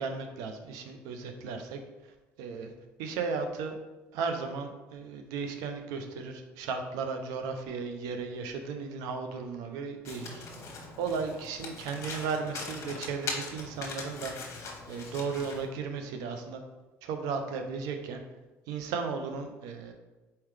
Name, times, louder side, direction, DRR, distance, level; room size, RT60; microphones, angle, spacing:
voice 1, 0.0-1.8 2.4-2.7 3.0-3.7 4.1-14.4 14.9-16.6 17.0-18.2 18.7-19.9, right 5 dB, 80° right, 6 dB, 0.6 m, -35 dB
Domestic sounds home sounds, 10.0-15.7, left 4 dB, 55° left, 0.9 m, -41 dB
4.2 x 3.8 x 3.3 m, 1.1 s
supercardioid pair, 85°, 6 cm